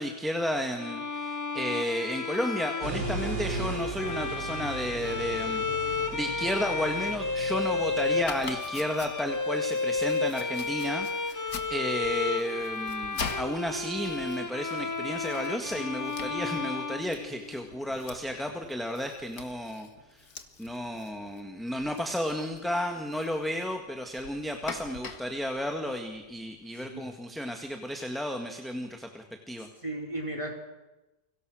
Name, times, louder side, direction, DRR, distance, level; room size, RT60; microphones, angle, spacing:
voice 1, 0.0-19.9 20.6-29.7, equal, ahead, 4 dB, 1.8 m, -33 dB
Bowed string instrument, 0.8-17.8, left 4 dB, 20° left, 0.5 m, -32 dB
sound 1, 2.8-8.3, right 2 dB, 80° right, 4.5 m, -37 dB
Domestic sounds home sounds, 8.2-26.6, left 5 dB, 60° left, 2.1 m, -45 dB
voice 2, 26.7-27.1 29.6-30.6, right 1 dB, 15° right, 1 dB, 4.5 m, -36 dB
30.0 x 24.0 x 6.4 m, 1.1 s
omnidirectional pair, 1.8 m